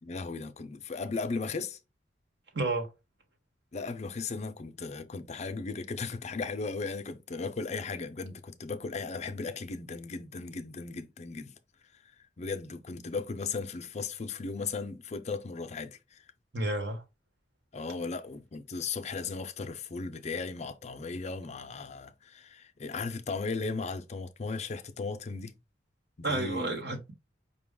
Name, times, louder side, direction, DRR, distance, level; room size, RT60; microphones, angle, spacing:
voice 1, 0.0-1.8 3.7-11.5 12.4-16.2 17.7-25.5 26.2-26.8, left 4 dB, 40° left, 0.5 m, -36 dB
voice 2, 2.5-2.9 16.5-17.0 26.2-27.1, right 2 dB, 65° right, 1.2 m, -31 dB
5.3 x 2.3 x 3.6 m
head